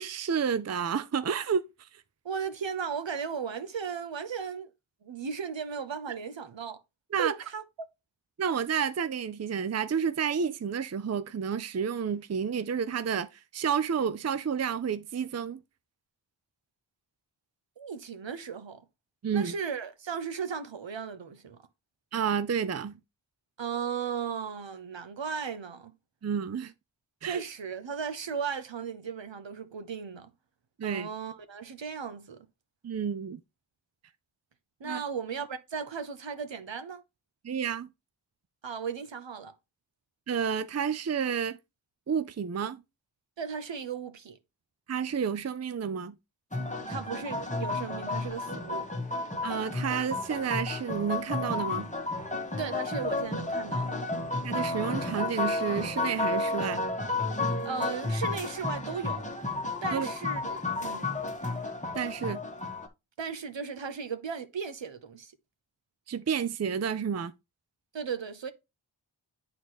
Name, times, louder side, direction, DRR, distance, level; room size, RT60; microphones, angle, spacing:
voice 1, 0.0-1.9 7.1-7.3 8.4-15.6 19.2-19.5 22.1-23.0 26.2-26.7 27.2-27.4 30.8-31.1 32.8-33.4 34.8-35.0 37.4-37.9 40.3-41.6 42.1-42.8 44.9-46.2 49.4-51.9 54.4-56.8 59.9-60.1 61.9-62.4 66.1-67.3, right 7 dB, 35° right, 0.5 m, -30 dB
voice 2, 2.2-4.7 5.0-6.8 7.2-7.6 17.8-18.8 19.3-21.6 23.6-25.9 27.2-30.3 30.8-32.5 34.8-37.0 38.6-39.5 43.4-44.4 46.8-48.9 52.6-54.0 57.6-59.3 59.8-61.1 63.2-65.3 67.9-68.5, right 6 dB, 70° right, 0.9 m, -36 dB
sound 1, 46.5-62.9, left 2 dB, 15° left, 1.2 m, -32 dB
9.2 x 4.0 x 3.0 m
wide cardioid pair, 40°, 47 cm